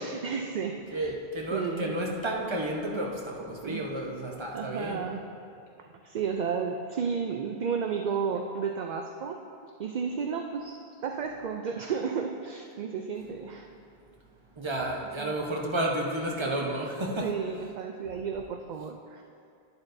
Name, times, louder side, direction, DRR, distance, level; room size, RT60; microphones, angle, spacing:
voice 1, 0.0-1.1 1.5-2.0 3.6-3.9 4.5-5.3 5.8-9.4 9.8-13.7 15.0-15.3 17.2-19.2, right 6 dB, 55° right, 3 dB, 0.5 m, -33 dB
voice 2, 0.9-5.0 14.6-17.3, right 1 dB, 30° right, -1 dB, 1.0 m, -31 dB
11.0 x 9.8 x 2.6 m, 2.4 s
omnidirectional pair, 1.0 m